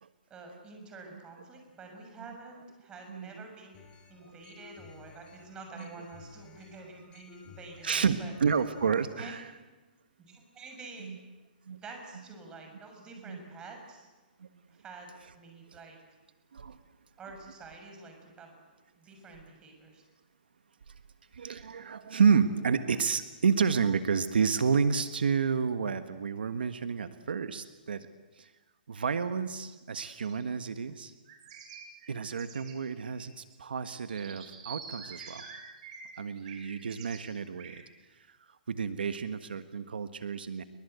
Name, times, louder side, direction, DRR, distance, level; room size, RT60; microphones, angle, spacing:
voice 1, 0.3-3.8 4.1-8.3 9.1-9.3 10.2-11.2 11.8-14.1 14.8-16.0 17.2-18.6 19.0-20.0, right 3 dB, 15° right, 3 dB, 6.7 m, -48 dB
voice 2, 3.1-3.4 4.2-4.3 5.8-5.9 7.8-9.5 11.0-11.2 11.7-11.8 13.2-13.4 14.4-14.5 15.7-15.8 16.5-16.8 20.9-21.0 21.3-28.1 28.4-28.5 28.9-31.1 32.1-35.5 36.2-37.8 38.1-40.6, right 6 dB, 85° right, 10 dB, 1.5 m, -30 dB
sound 1, 3.7-9.1, left 5 dB, 20° left, 5.6 m, -54 dB
sound 2, 30.2-30.4 31.3-33.2 33.5-33.6 33.8-37.2 37.5-37.8, right 5 dB, 45° right, 6.0 m, -48 dB
29.0 x 23.0 x 8.2 m, 1.2 s
hypercardioid pair, 145°, 5 cm